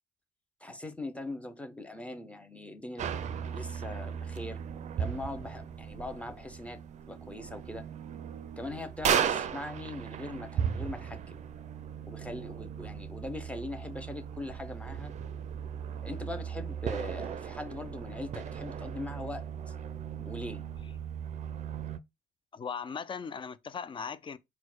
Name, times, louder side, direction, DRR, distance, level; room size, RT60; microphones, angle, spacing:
voice 1, 0.6-3.1 3.5-4.6 5.0-6.8 7.1-7.9 8.6-11.4 12.1-15.1 16.0-19.7 20.2-20.6, left 2 dB, 5° left, 0.8 m, -41 dB
sound 1, 3.0-22.0, right 8 dB, 45° right, 0.5 m, -36 dB
voice 2, 22.5-24.4, left 6 dB, 30° left, 0.4 m, -38 dB
4.4 x 2.2 x 4.4 m
cardioid pair, 110°, 17 cm